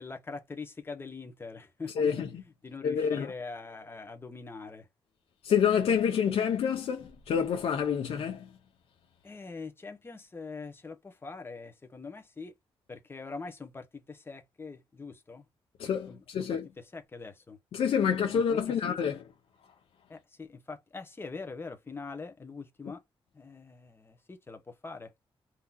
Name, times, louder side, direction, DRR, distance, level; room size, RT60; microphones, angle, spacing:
voice 1, 0.0-2.3 2.6-4.9 9.2-12.6 12.9-15.4 16.1-17.6 18.3-19.0 20.1-23.0 23.3-25.1, left 4 dB, 25° left, 1.0 m, -43 dB
voice 2, 2.0-2.3 2.8-3.3 5.4-8.5 15.8-16.6 17.7-19.2, left 7 dB, 90° left, 0.7 m, -27 dB
3.7 x 2.8 x 2.3 m
wide cardioid pair, 145°, 10 cm